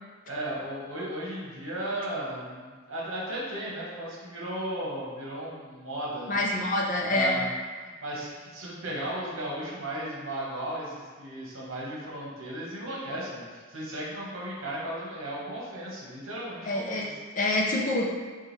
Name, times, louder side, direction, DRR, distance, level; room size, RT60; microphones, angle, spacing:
voice 1, 0.3-6.4 7.1-7.5 8.0-17.2, right 1 dB, 65° right, -5 dB, 1.1 m, -35 dB
voice 2, 6.3-7.4 16.6-17.1 17.4-18.1, left 1 dB, 35° left, -1 dB, 0.5 m, -26 dB
6.0 x 2.3 x 3.2 m, 1.5 s
head